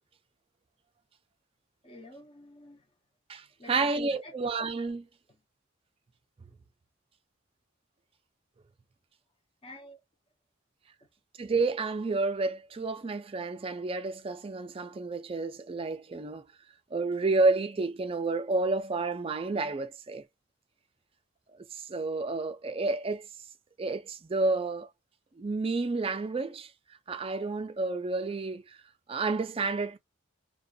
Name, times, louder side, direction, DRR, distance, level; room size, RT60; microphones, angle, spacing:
voice 1, 1.8-2.8 3.6-4.4 5.3-5.4 9.6-10.0 11.0-11.1, left 1 dB, 25° left, 0.8 m, -49 dB
voice 2, 3.3-5.1 11.4-16.4 16.9-20.2 21.7-23.3 23.8-24.9 25.4-26.7 27.1-28.6 29.1-30.0, right 3 dB, 30° right, 0.4 m, -30 dB
2.4 x 2.2 x 2.4 m
head